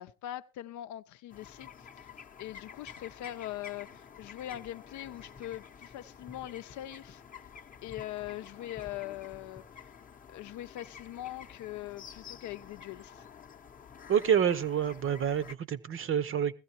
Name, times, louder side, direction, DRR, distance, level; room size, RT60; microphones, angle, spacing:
voice 1, 0.0-1.7 1.9-2.1 2.4-7.2 7.8-9.6 10.3-13.2, left 14 dB, 60° left, 0.7 m, -41 dB
sound 1, 1.3-15.6, left 7 dB, 25° left, 0.8 m, -50 dB
voice 2, 14.1-16.5, right 8 dB, 40° right, 0.9 m, -28 dB
17.5 x 14.5 x 2.9 m
cardioid pair, 125°, 34 cm